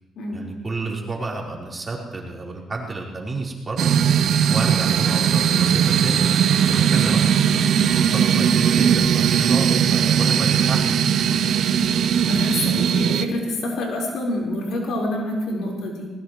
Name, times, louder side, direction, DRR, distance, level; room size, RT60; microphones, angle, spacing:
voice 1, 0.3-3.9 4.5-6.2 6.7-7.2 7.6-11.0, right 3 dB, 30° right, -3 dB, 4.2 m, -30 dB
sound 1, 3.8-13.2, right 8 dB, 70° right, 0.8 m, -19 dB
voice 2, 12.2-16.1, left 1 dB, 75° left, -1 dB, 4.5 m, -27 dB
20.0 x 19.0 x 3.2 m, 1.2 s
cardioid pair, 90°, 0 cm